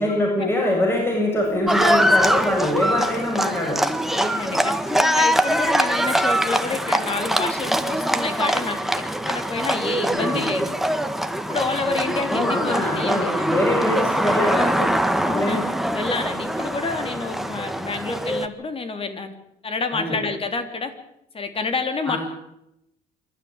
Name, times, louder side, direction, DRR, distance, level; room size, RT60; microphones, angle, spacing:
voice 1, 0.0-3.8 10.1-10.4 12.3-14.9 15.2-15.6 19.9-20.2 22.1-22.2, left 1 dB, 15° left, -1 dB, 7.6 m, -23 dB
Livestock farm animals working animals, 1.7-18.5, equal, ahead, 1.6 m, -23 dB
voice 2, 4.1-10.7 11.5-13.5 13.7-13.8 15.2-15.7 15.9-19.4 19.6-20.9 21.3-22.2, left 4 dB, 35° left, 8 dB, 3.6 m, -29 dB
27.0 x 12.5 x 8.9 m, 0.82 s
cardioid pair, 110°, 17 cm